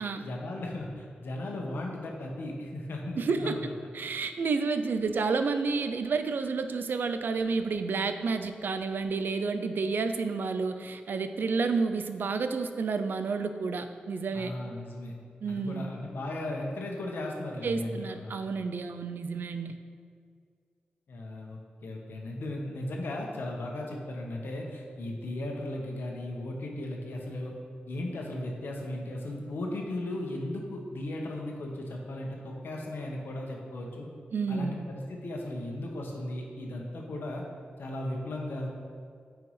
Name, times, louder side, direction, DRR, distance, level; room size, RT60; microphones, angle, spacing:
voice 1, 0.0-3.7 14.3-15.1 15.5-18.3 21.1-27.5 27.9-34.1 34.5-37.4 37.8-38.7, left 1 dB, 85° left, 0 dB, 1.1 m, -36 dB
voice 2, 3.2-3.6 3.9-14.5 15.4-15.9 17.6-19.8 34.3-34.8, right 4 dB, 70° right, 9 dB, 0.4 m, -30 dB
9.5 x 4.7 x 3.2 m, 2.2 s
wide cardioid pair, 125°, 4 cm